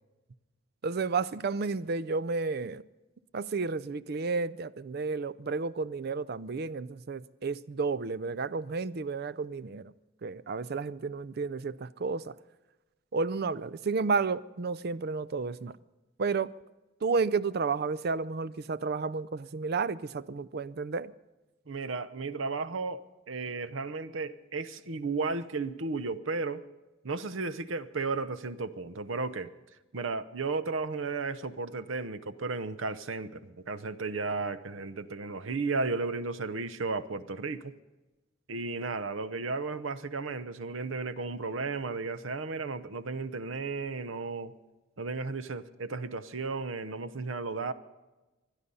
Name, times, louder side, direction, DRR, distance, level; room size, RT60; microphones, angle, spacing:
voice 1, 0.8-2.8 3.3-9.9 10.2-12.3 13.1-15.7 16.2-16.5 17.0-21.1, right 4 dB, 50° right, 0.5 m, -31 dB
voice 2, 21.7-23.0 23.3-26.6 27.0-29.5 29.9-37.7 38.5-44.5 45.0-47.7, right 3 dB, 80° right, 0.8 m, -34 dB
24.5 x 10.0 x 5.5 m
head